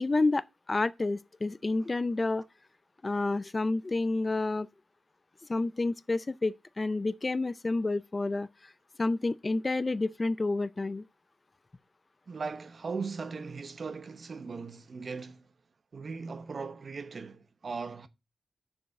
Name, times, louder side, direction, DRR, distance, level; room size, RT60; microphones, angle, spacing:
voice 1, 0.0-2.4 3.0-4.7 5.5-8.7 9.0-11.0, left 2 dB, 25° left, 0.4 m, -29 dB
voice 2, 12.3-15.5 15.9-18.1, right 4 dB, 45° right, 0.8 m, -38 dB
7.1 x 6.0 x 6.4 m
wide cardioid pair, 135°, 0 cm